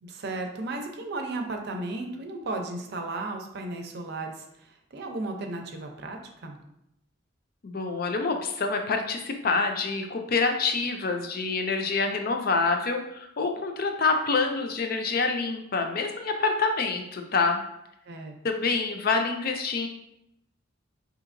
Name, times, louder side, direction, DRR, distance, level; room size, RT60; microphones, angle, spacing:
voice 1, 0.0-4.4 4.9-6.6 18.1-18.3, right 2 dB, 55° right, 3 dB, 0.6 m, -34 dB
voice 2, 7.6-17.6 18.4-19.9, left 4 dB, 50° left, 5 dB, 0.5 m, -26 dB
5.0 x 2.8 x 2.6 m, 0.80 s
head